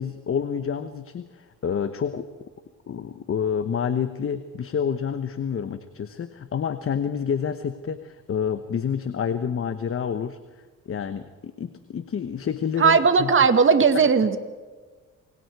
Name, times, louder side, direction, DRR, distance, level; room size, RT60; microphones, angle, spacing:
voice 1, 0.0-2.3 2.9-10.4 10.9-13.3 13.9-14.1, left 7 dB, 45° left, 10 dB, 1.2 m, -28 dB
voice 2, 12.8-14.4, right 5 dB, 40° right, 9 dB, 2.0 m, -17 dB
27.5 x 24.5 x 4.8 m, 1.4 s
cardioid pair, 90°, 30 cm